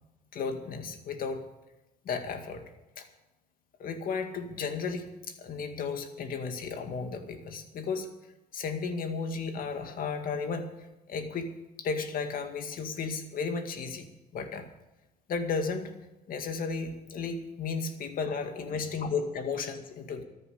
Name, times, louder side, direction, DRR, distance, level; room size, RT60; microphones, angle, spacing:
voice 1, 0.3-1.4 2.0-2.6 3.0-3.1 3.8-8.1 8.5-10.7 11.1-11.5 11.8-14.7 15.3-15.9 16.3-20.2, left 5 dB, 55° left, 6 dB, 2.1 m, -34 dB
13.5 x 9.9 x 8.5 m, 1.0 s
cardioid pair, 110°, 17 cm